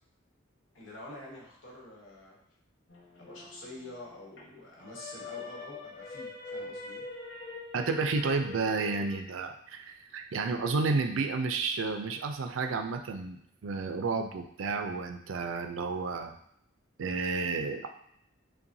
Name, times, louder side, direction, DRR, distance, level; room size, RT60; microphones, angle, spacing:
voice 1, 0.7-2.4 3.2-7.0, left 1 dB, 85° left, -4 dB, 1.3 m, -47 dB
sound 1, 2.9-4.4 4.8-9.2, left 3 dB, 65° left, 1.0 m, -43 dB
voice 2, 7.7-16.3 17.0-17.9, right 4 dB, 85° right, 6 dB, 0.4 m, -31 dB
5.6 x 2.2 x 2.6 m, 0.73 s
head